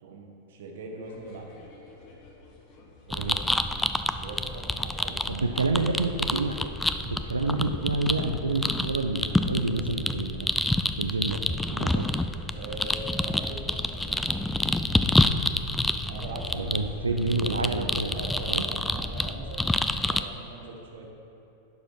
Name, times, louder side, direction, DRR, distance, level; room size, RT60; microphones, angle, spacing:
voice 1, 0.0-1.5 3.1-3.5 4.1-6.1 12.5-15.1 16.1-17.3 18.1-21.1, right 3 dB, 60° right, 1 dB, 1.2 m, -42 dB
sound 1, 1.0-19.5, left 3 dB, 40° left, 1.2 m, -46 dB
sound 2, 3.1-20.2, left 2 dB, 5° left, 0.3 m, -28 dB
voice 2, 5.3-6.7 7.0-10.5 11.0-11.4 11.7-12.1 16.5-18.6, right 3 dB, 80° right, 6 dB, 0.4 m, -28 dB
10.5 x 5.0 x 5.5 m, 2.9 s
figure-of-eight pair, 90°, 0 cm